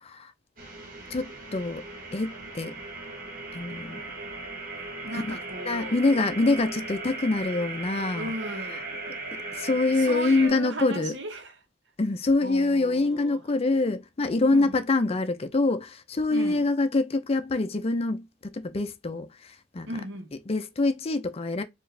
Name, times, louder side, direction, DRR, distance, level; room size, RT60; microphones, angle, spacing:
voice 1, 0.0-0.3 1.1-1.8 2.1-2.7 3.5-4.0 5.1-5.4 5.7-8.3 8.7-8.8 9.3-11.1 12.0-19.9 20.5-21.6, left 2 dB, 30° left, 0.5 m, -25 dB
sound 1, 0.6-10.5, right 3 dB, 50° right, 1.2 m, -38 dB
voice 2, 5.0-6.0 8.2-9.2 9.9-11.5 12.4-13.4 14.5-14.8 16.3-16.7 19.9-20.3, right 1 dB, 70° right, 0.9 m, -36 dB
4.6 x 2.4 x 3.2 m
head